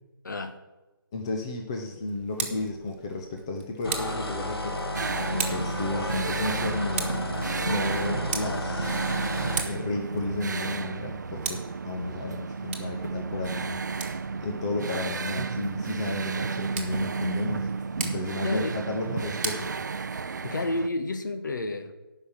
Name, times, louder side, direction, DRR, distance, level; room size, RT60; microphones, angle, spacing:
voice 1, 0.2-0.6 18.4-18.8 20.4-21.9, left 2 dB, 55° left, 8 dB, 1.2 m, -30 dB
voice 2, 1.1-7.2 7.6-9.0 9.6-17.7 18.0-19.8, left 2 dB, 15° left, 2 dB, 0.5 m, -33 dB
Tick, 2.1-20.5, right 5 dB, 30° right, 1.5 m, -40 dB
sound 1, 3.8-9.7, left 1 dB, 85° left, 1.9 m, -32 dB
sound 2, 4.9-20.9, right 4 dB, 50° right, 0.5 m, -32 dB
11.0 x 5.6 x 8.7 m, 1.1 s
hypercardioid pair, 170°, 12 cm